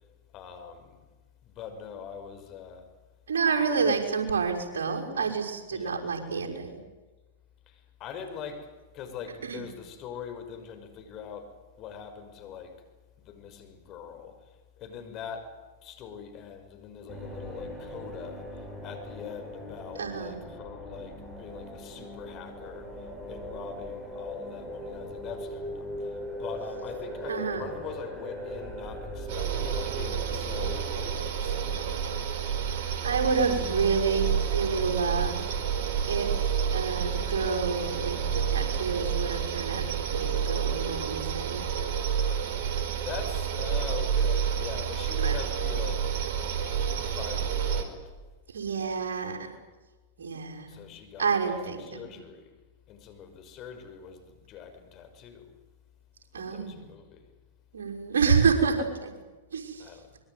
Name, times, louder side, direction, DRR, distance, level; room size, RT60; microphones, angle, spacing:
voice 1, 0.3-1.0 1.4-2.9 3.8-4.0 5.7-6.1 7.7-12.8 13.2-14.4 14.8-15.5 15.8-32.7 43.0-46.1 46.7-48.1 50.7-52.5 52.9-55.5 56.4-57.3 59.8-60.1, left 7 dB, 40° left, 7 dB, 5.8 m, -43 dB
voice 2, 3.3-6.7 9.4-9.7 20.0-20.4 27.3-27.7 33.0-35.4 36.1-36.3 36.7-39.8 40.1-41.6 45.2-45.3 48.5-49.5 50.2-50.8 51.2-52.0 56.3-56.8 57.7-59.1 59.5-59.8, right 5 dB, 75° right, 1 dB, 5.9 m, -28 dB
sound 1, 17.1-31.2, equal, 5° right, 7.6 m, -39 dB
sound 2, 29.3-47.8, right 7 dB, 55° right, 4.1 m, -29 dB
24.5 x 22.5 x 9.7 m, 1.2 s
hypercardioid pair, 105°, 0 cm